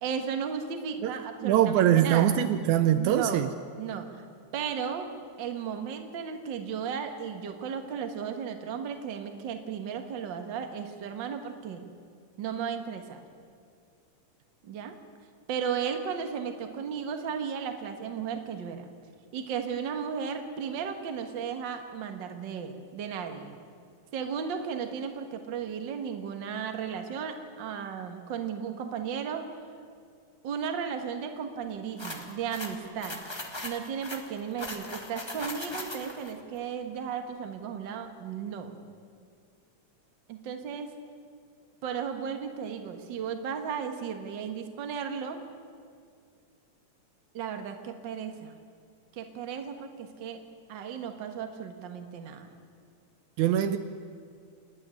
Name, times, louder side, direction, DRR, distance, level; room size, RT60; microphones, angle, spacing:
voice 1, 0.0-2.3 2.9-3.4 3.8-4.2 4.5-5.1 5.4-11.8 12.4-13.2 14.6-15.0 15.5-18.9 19.3-23.5 24.1-29.5 30.4-33.2 33.6-38.8 40.3-40.9 41.8-45.4 47.3-48.5 49.1-50.4 50.7-52.5, right 7 dB, 45° right, 6 dB, 1.7 m, -35 dB
voice 2, 1.4-3.5 53.4-53.8, right 11 dB, 80° right, 10 dB, 2.0 m, -23 dB
sound 1, 32.0-36.3, left 1 dB, 35° left, 0.4 m, -39 dB
28.5 x 9.5 x 9.9 m, 2.2 s
omnidirectional pair, 3.5 m